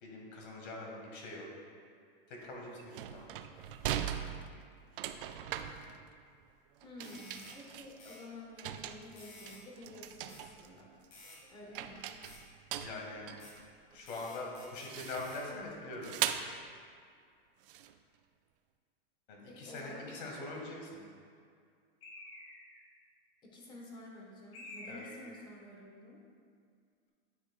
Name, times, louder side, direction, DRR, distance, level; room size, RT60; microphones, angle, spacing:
voice 1, 0.0-1.5 2.3-3.3 12.8-13.3 13.9-16.2 19.3-21.1 24.8-25.1, left 2 dB, 60° left, -1 dB, 1.8 m, -43 dB
sound 1, 2.4-2.5 2.8-6.4 6.8-8.2 8.6-10.7 11.0-11.5 11.7-14.1 14.9-15.4 16.0-16.6 17.6-17.9, right 10 dB, 65° right, 0.5 m, -40 dB
voice 2, 6.8-10.9 11.5-12.0 19.5-20.2 23.4-26.2, left 1 dB, 15° left, -2 dB, 0.8 m, -50 dB
sound 2, 7.0-7.6 8.0-8.2 9.2-9.6 10.3-10.4 11.1-11.4 12.2-12.4 13.4-13.5 14.1-15.4, left 2 dB, 35° left, 1.7 m, -53 dB
Bird, 22.0-22.9 24.5-25.4, left 2 dB, 80° left, 1.7 m, -49 dB
9.8 x 5.9 x 2.4 m, 2.2 s
supercardioid pair, 165°, 29 cm